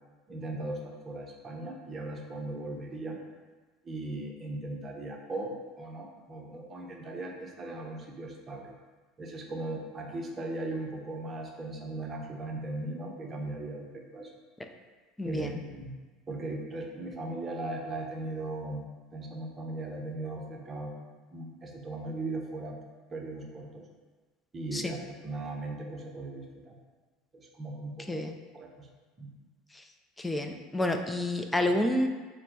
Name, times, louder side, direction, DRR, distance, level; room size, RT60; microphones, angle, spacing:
voice 1, 0.3-3.2 3.8-8.7 9.2-13.9 14.1-14.3 15.2-15.9 16.3-20.9 21.3-22.8 23.1-23.9 24.5-26.7 27.3-28.2 28.5-28.9 29.2-29.3, right 2 dB, 30° right, 0 dB, 0.7 m, -38 dB
voice 2, 15.2-15.6 24.7-24.9 28.1-28.3 30.2-32.1, left 1 dB, 10° left, 5 dB, 0.4 m, -29 dB
4.2 x 2.2 x 4.0 m, 1.3 s
hypercardioid pair, 75°, 0 cm